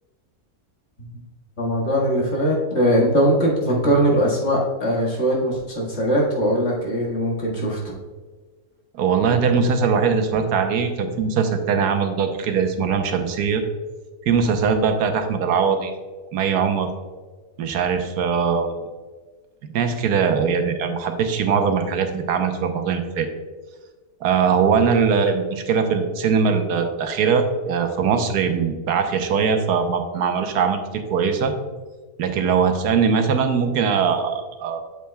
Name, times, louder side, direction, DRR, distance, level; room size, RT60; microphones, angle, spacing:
voice 1, 1.6-7.9, equal, 45° left, -4 dB, 1.9 m, -21 dB
voice 2, 8.9-13.6 14.3-15.9 16.3-16.9 17.6-18.8 19.7-23.3 24.2-31.5 32.2-34.8, right 6 dB, 85° right, 6 dB, 1.3 m, -21 dB
8.3 x 7.6 x 2.3 m, 1.3 s
omnidirectional pair, 1.7 m